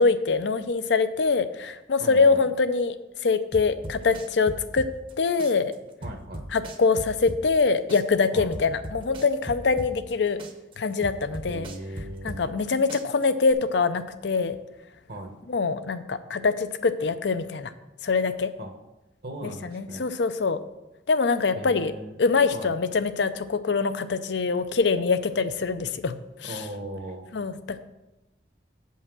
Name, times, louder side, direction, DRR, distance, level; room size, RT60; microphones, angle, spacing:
voice 1, 0.0-3.0 3.2-4.9 5.2-5.7 6.5-10.4 10.8-11.7 12.2-14.6 15.5-17.7 18.0-18.5 19.4-20.6 21.1-21.9 22.2-26.2 26.4-26.6 27.3-27.8, left 4 dB, 75° left, 12 dB, 0.5 m, -24 dB
voice 2, 2.0-2.5 6.0-6.4 8.3-8.5 11.5-12.4 15.1-15.3 18.6-18.7 19.2-20.0 21.5-22.1 22.5-22.7 26.4-27.3, right 1 dB, 55° right, 4 dB, 1.1 m, -38 dB
sound 1, 3.5-5.1 5.4-7.6 7.9-10.1 10.4-12.6 12.9-13.5, right 1 dB, 30° right, 0.8 m, -37 dB
8.5 x 5.6 x 6.0 m, 0.99 s
head